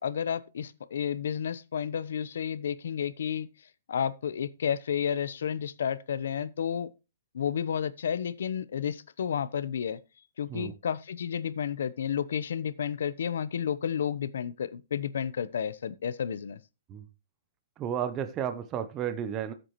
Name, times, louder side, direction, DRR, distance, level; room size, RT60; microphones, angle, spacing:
voice 1, 0.0-3.5 3.9-6.9 7.3-10.0 10.4-16.6, left 8 dB, 65° left, 0.8 m, -31 dB
voice 2, 17.8-19.5, right 9 dB, 15° right, 0.7 m, -32 dB
14.0 x 7.9 x 3.0 m
hypercardioid pair, 180°, 0 cm